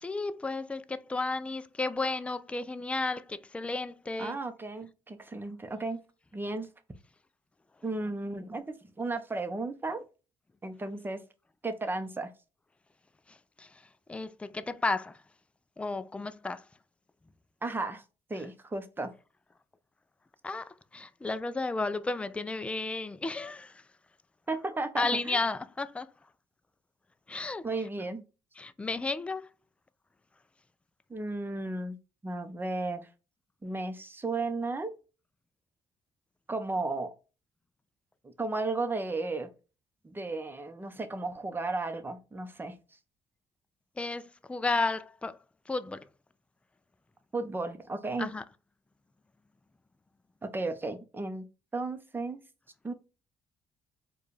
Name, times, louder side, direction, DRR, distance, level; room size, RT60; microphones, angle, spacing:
voice 1, 0.0-4.4 13.6-13.7 14.1-15.2 15.8-16.6 20.4-23.8 25.0-26.1 27.3-27.7 28.6-29.5 44.0-45.4 45.7-46.0 48.2-48.4, left 3 dB, 10° left, 0.3 m, -33 dB
voice 2, 4.2-6.0 6.3-6.7 7.8-10.0 10.6-11.2 11.6-12.3 17.6-18.0 18.3-19.1 24.5-25.4 27.6-28.2 31.1-32.0 32.2-33.1 33.6-34.9 36.5-37.1 38.2-39.5 40.0-42.7 47.3-48.3 50.4-51.4 51.7-52.4 52.8-52.9, right 3 dB, 20° right, 0.8 m, -34 dB
4.5 x 2.3 x 3.2 m
cardioid pair, 100°, 11 cm